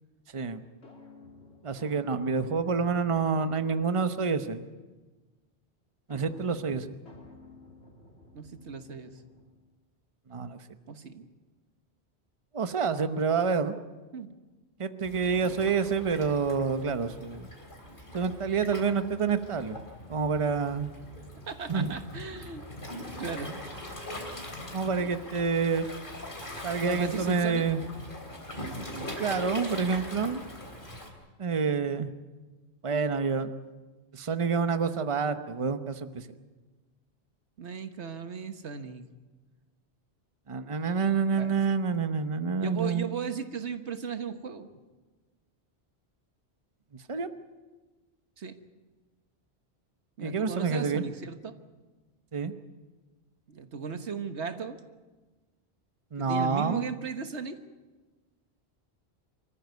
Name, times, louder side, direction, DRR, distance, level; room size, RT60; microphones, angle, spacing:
sound 1, 0.8-4.6 6.1-9.7, left 3 dB, 75° left, 3.3 m, -53 dB
voice 1, 1.6-4.6 6.1-6.9 10.3-10.6 12.5-13.7 14.8-17.5 18.1-19.8 20.1-20.9 21.7-21.9 24.7-25.9 26.6-27.8 29.2-30.4 31.4-32.1 32.8-33.5 34.1-36.3 40.5-43.1 46.9-47.3 50.2-51.0 52.3-52.5 56.1-56.8, right 5 dB, 30° right, 10 dB, 0.9 m, -28 dB
voice 2, 8.3-9.1 10.9-11.3 14.1-14.3 21.5-22.6 23.2-23.6 26.8-27.7 37.6-39.0 41.4-41.6 42.6-44.7 48.4-48.5 50.2-51.5 53.5-54.8 56.2-57.6, right 6 dB, 85° right, 9 dB, 1.6 m, -36 dB
Waves surf, 15.0-31.1, left 1 dB, 50° left, 3.7 m, -42 dB
26.0 x 14.5 x 9.5 m, 1.3 s
omnidirectional pair, 1.1 m